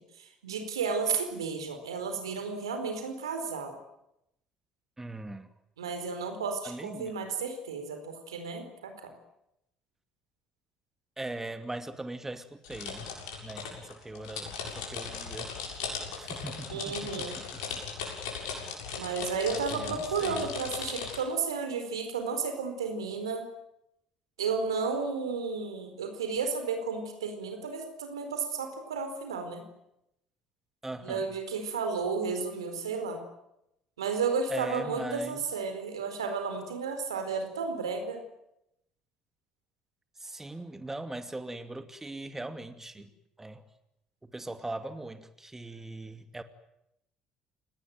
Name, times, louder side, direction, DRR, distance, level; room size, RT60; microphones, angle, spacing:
voice 1, 0.2-3.8 5.8-9.1 16.7-17.4 18.9-23.5 24.4-29.6 31.0-33.2 34.0-38.2, right 5 dB, 85° right, 7 dB, 4.4 m, -33 dB
voice 2, 5.0-5.5 6.6-7.2 11.2-13.1 13.4-15.5 16.1-17.8 19.5-20.5 30.8-31.3 34.5-35.4 40.2-43.1 43.4-43.6 44.2-46.4, right 2 dB, 15° right, 9 dB, 2.5 m, -40 dB
sound 1, 12.6-21.2, left 5 dB, 75° left, 7.4 m, -38 dB
29.5 x 18.5 x 9.4 m, 0.84 s
hypercardioid pair, 55°, 3 cm